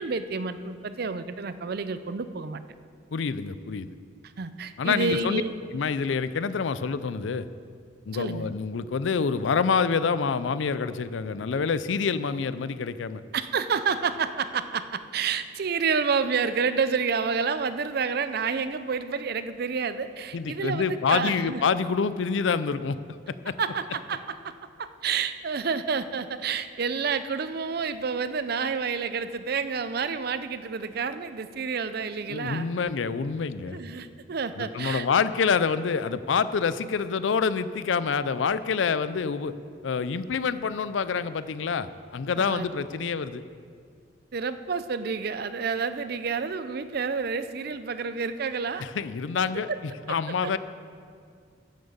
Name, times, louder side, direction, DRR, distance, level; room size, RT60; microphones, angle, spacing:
voice 1, 0.0-2.6 4.4-5.5 8.1-8.5 13.3-21.6 23.6-24.5 24.8-32.7 33.7-35.1 42.4-42.9 44.3-48.8 49.7-49.8 50.4-50.5, right 5 dB, 55° right, 12 dB, 0.5 m, -29 dB
voice 2, 3.1-3.9 4.8-5.4 5.7-7.5 8.1-13.2 20.3-23.0 23.4-23.6 32.3-33.8 34.6-39.5 39.8-43.4 48.8-49.7 50.1-50.6, left 5 dB, 80° left, 14 dB, 0.5 m, -27 dB
10.5 x 7.5 x 7.2 m, 2.2 s
head